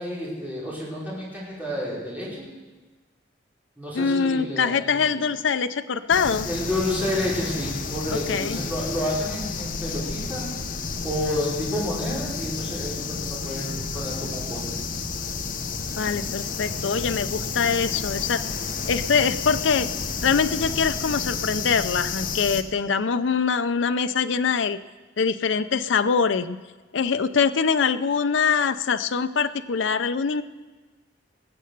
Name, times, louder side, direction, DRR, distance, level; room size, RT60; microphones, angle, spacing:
voice 1, 0.0-2.5 3.8-5.2 6.4-13.7 13.9-14.8, left 1 dB, 10° right, -7 dB, 5.0 m, -30 dB
voice 2, 3.9-6.5 8.1-8.6 16.0-18.4 18.9-19.9 20.2-24.8 25.2-26.6 26.9-30.4, left 5 dB, 75° left, 11 dB, 0.5 m, -23 dB
sound 1, 6.1-22.6, left 5 dB, 45° left, 0.8 m, -31 dB
20.0 x 7.6 x 6.6 m, 1.3 s
head